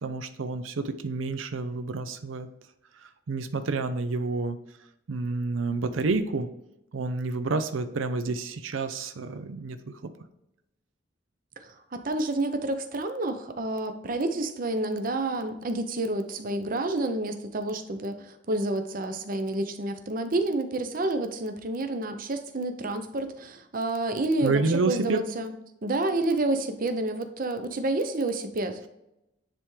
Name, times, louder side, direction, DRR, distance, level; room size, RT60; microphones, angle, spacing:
voice 1, 0.0-2.5 2.9-4.6 5.1-6.5 6.9-9.9 24.4-25.2, right 3 dB, 90° right, 10 dB, 0.5 m, -29 dB
voice 2, 11.6-25.5 25.8-28.9, right 2 dB, 45° right, 7 dB, 0.7 m, -29 dB
10.0 x 3.5 x 3.2 m, 0.88 s
head